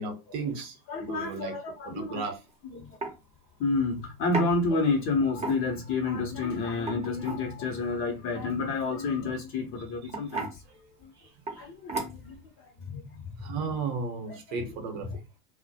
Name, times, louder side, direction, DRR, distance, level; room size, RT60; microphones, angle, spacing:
voice 1, 0.0-1.5 1.8-2.4 9.8-10.1 10.7-10.8 11.2-11.7 13.4-15.2, right 4 dB, 45° right, 0.9 m, -35 dB
voice 2, 0.9-2.2 2.7-2.8 3.6-10.5 11.6-12.3 12.9-13.0 14.3-14.7 15.0-15.2, left 3 dB, 30° left, 0.7 m, -29 dB
sound 1, 2.3-2.5 3.0-3.2 4.3-4.5 5.3-5.9 6.7-7.4 9.1-9.3 10.1-10.6 11.5-11.6 11.9-12.4, right 3 dB, 15° right, 0.7 m, -34 dB
2.1 x 2.1 x 2.7 m
hypercardioid pair, 100°, 44 cm